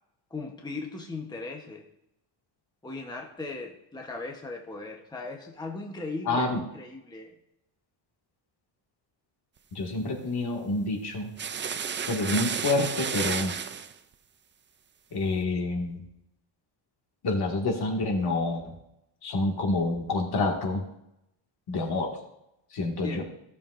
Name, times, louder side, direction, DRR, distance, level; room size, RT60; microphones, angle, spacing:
voice 1, 0.3-1.9 2.8-7.4 23.0-23.2, left 3 dB, 10° left, 1 dB, 1.0 m, -38 dB
voice 2, 6.3-6.6 9.8-11.3 12.1-13.5 15.1-16.0 17.2-18.7 19.2-20.8 21.7-22.1 22.7-23.2, left 2 dB, 55° left, 1 dB, 2.0 m, -28 dB
sound 1, 11.4-13.9, right 7 dB, 25° right, 0.4 m, -32 dB
16.0 x 7.0 x 2.6 m, 0.82 s
cardioid pair, 125°, 47 cm